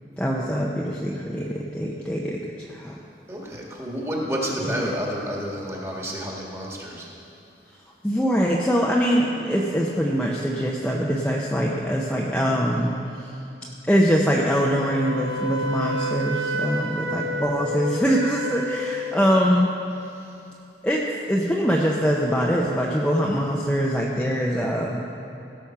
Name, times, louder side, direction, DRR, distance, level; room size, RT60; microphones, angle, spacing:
voice 1, 0.2-3.0 4.6-5.0 8.0-12.9 13.2-13.3 13.9-19.7 20.8-25.0, equal, 5° left, -3 dB, 0.7 m, -23 dB
voice 2, 3.3-7.1, equal, 15° right, -3 dB, 1.7 m, -30 dB
Wind instrument woodwind instrument, 14.6-19.4, equal, 80° right, 1.0 m, -30 dB
16.5 x 7.0 x 5.9 m, 2.8 s
head